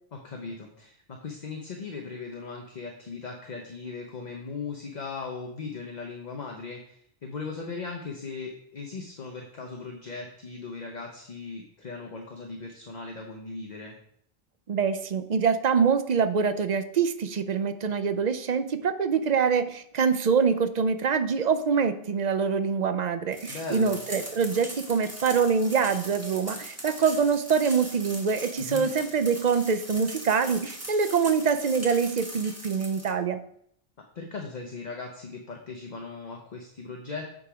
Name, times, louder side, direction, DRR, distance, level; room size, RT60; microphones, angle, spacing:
voice 1, 0.1-14.0 23.5-24.0 28.6-28.9 34.1-37.3, left 4 dB, 45° left, 1 dB, 0.9 m, -38 dB
voice 2, 14.7-33.4, right 6 dB, 50° right, 11 dB, 0.7 m, -25 dB
sound 1, 23.3-33.1, right 1 dB, 15° right, 1.2 m, -40 dB
8.6 x 3.9 x 4.9 m, 0.69 s
omnidirectional pair, 1.0 m